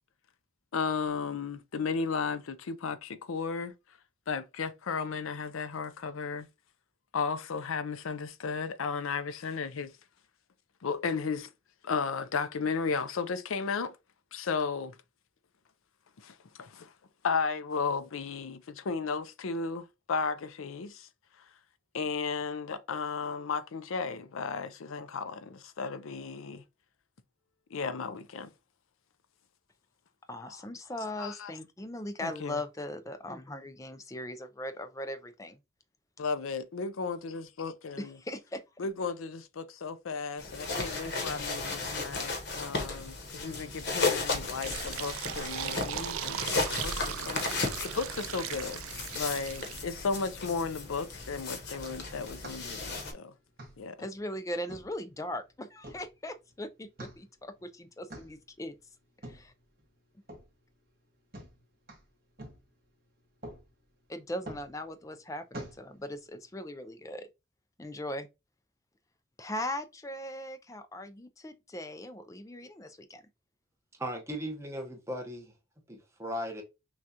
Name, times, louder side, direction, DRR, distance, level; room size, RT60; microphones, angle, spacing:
voice 1, 0.7-3.7 4.3-6.5 7.1-9.9 10.8-11.5 11.8-14.0 14.3-15.0 16.2-16.9 17.2-21.1 21.9-26.6 27.7-28.5 31.2-31.5 32.2-32.6 36.2-38.2 38.8-48.8 49.1-53.3 53.8-54.1, left 5 dB, 80° left, 0.5 m, -34 dB
voice 2, 30.3-35.6 38.0-38.6 54.0-58.7 59.2-59.5 64.1-67.3 67.8-68.3 69.4-73.2, left 1 dB, 15° left, 0.4 m, -39 dB
sound 1, 40.4-53.1, left 3 dB, 50° left, 0.9 m, -35 dB
Fill (with liquid), 44.3-50.0, right 12 dB, 80° right, 0.3 m, -39 dB
sound 2, 52.4-66.5, right 1 dB, 45° right, 1.4 m, -50 dB
voice 3, 74.0-75.5 75.9-76.6, equal, 15° right, 0.9 m, -37 dB
6.0 x 2.3 x 2.8 m
head